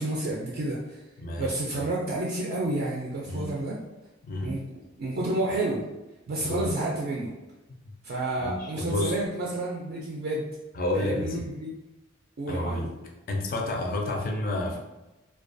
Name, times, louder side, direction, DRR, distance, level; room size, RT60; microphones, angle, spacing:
voice 1, 0.0-1.0 1.4-3.8 4.4-4.6 5.0-5.8 6.3-7.3 8.0-10.5 10.9-11.7 12.4-12.8, right 2 dB, 50° right, -4 dB, 0.3 m, -30 dB
voice 2, 1.2-1.8 3.3-3.5 4.2-4.6 6.4-6.7 7.8-7.9 8.4-9.1 10.7-11.5 12.5-12.9 13.3-14.8, left 1 dB, 45° left, 1 dB, 0.4 m, -30 dB
2.3 x 2.2 x 2.5 m, 1.0 s
head